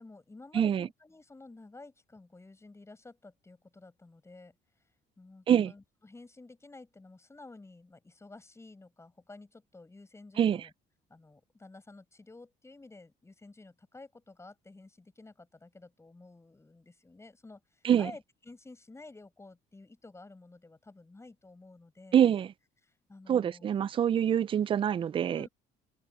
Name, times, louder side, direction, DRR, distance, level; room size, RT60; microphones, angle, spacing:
voice 1, 0.0-4.5 5.2-10.7 11.1-22.2 22.9-23.7 25.3-25.5, left 3 dB, 15° left, 7.6 m, -52 dB
voice 2, 0.5-0.9 5.5-5.7 10.4-10.6 17.8-18.1 22.1-22.5 23.3-25.5, right 9 dB, 30° right, 0.3 m, -25 dB
open air
cardioid pair, 110°, 17 cm